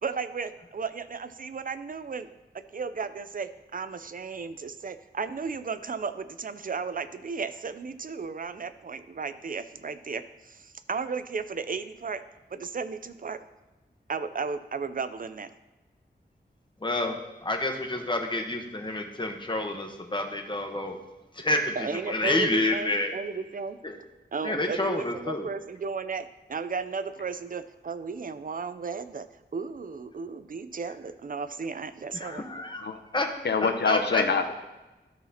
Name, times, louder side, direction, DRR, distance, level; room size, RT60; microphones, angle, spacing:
voice 1, 0.0-12.2 12.5-13.4 14.1-15.5 21.8-23.8 24.3-29.3 29.5-32.5, right 5 dB, 50° right, 12 dB, 0.5 m, -34 dB
voice 2, 16.8-17.2 17.4-21.0 21.4-21.8 22.1-23.1 23.8-23.9 24.4-25.5 32.1-32.9 33.1-33.3 33.9-34.2, left 2 dB, 25° left, 3 dB, 1.0 m, -28 dB
voice 3, 32.6-33.0 33.4-34.5, left 4 dB, 75° left, 7 dB, 0.7 m, -26 dB
13.0 x 5.8 x 2.8 m, 1.1 s
wide cardioid pair, 80°, 18 cm